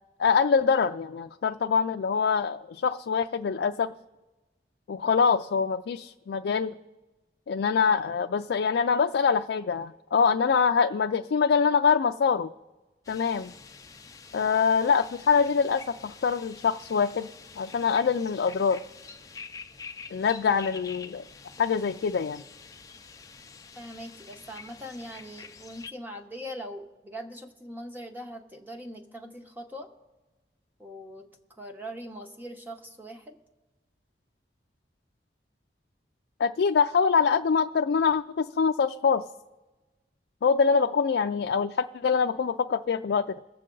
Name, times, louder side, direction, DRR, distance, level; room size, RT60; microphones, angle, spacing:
voice 1, 0.2-3.9 4.9-6.7 7.5-12.5 13.1-13.5 14.3-17.3 17.6-18.8 20.1-21.2 21.6-22.4 36.4-39.2 40.4-43.4, left 6 dB, 80° left, 6 dB, 0.3 m, -24 dB
sound 1, 13.0-25.9, left 5 dB, 20° left, 0.5 m, -47 dB
voice 2, 23.8-29.9 30.8-31.3 31.6-33.4, equal, 10° right, 3 dB, 0.9 m, -41 dB
22.0 x 7.7 x 3.8 m, 1.1 s
head